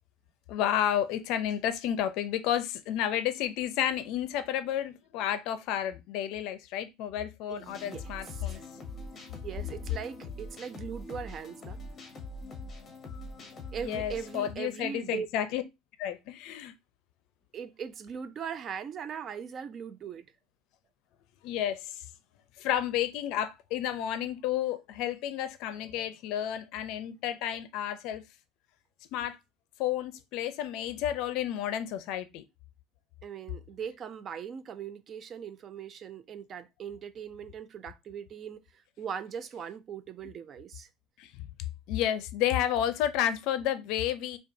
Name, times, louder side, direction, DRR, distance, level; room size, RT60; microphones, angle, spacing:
voice 1, 0.5-8.6 13.8-15.6 16.0-16.7 21.4-21.9 22.6-28.2 29.1-29.4 29.8-32.4 41.2-41.3 41.9-44.4, left 11 dB, 60° left, 0.5 m, -31 dB
voice 2, 7.5-8.6 9.4-11.8 13.7-15.3 17.5-20.3 33.2-38.6 39.0-40.9, right 7 dB, 30° right, 0.4 m, -40 dB
sound 1, 7.7-14.5, left 2 dB, 25° left, 0.9 m, -43 dB
5.2 x 2.3 x 2.6 m
cardioid pair, 160°, 0 cm